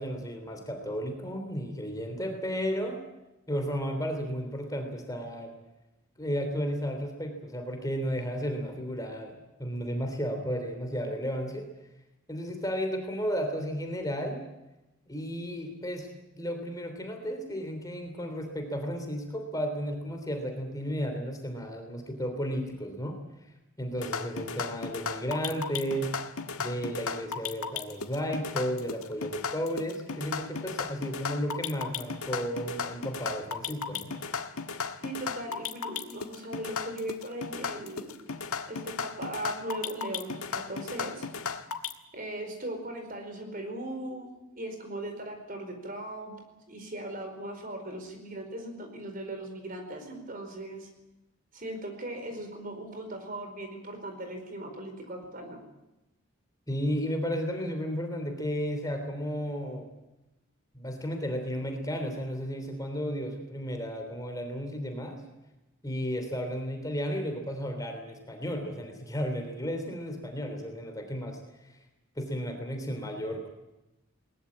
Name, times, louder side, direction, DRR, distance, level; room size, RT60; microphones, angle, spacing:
voice 1, 0.0-3.0 3.5-5.5 6.2-11.6 12.3-14.4 15.1-16.1 16.3-23.2 23.8-26.1 26.6-34.1 56.7-59.9 60.7-65.2 65.8-71.7 72.1-73.5, equal, 15° left, 4 dB, 3.3 m, -33 dB
sound 1, 24.0-41.9, left 6 dB, 80° left, 1.7 m, -35 dB
voice 2, 35.0-38.2 38.7-41.3 42.1-44.3 44.5-46.4 46.7-50.9 51.5-55.6, right 1 dB, 40° right, 5 dB, 4.7 m, -38 dB
21.0 x 20.0 x 8.7 m, 0.98 s
head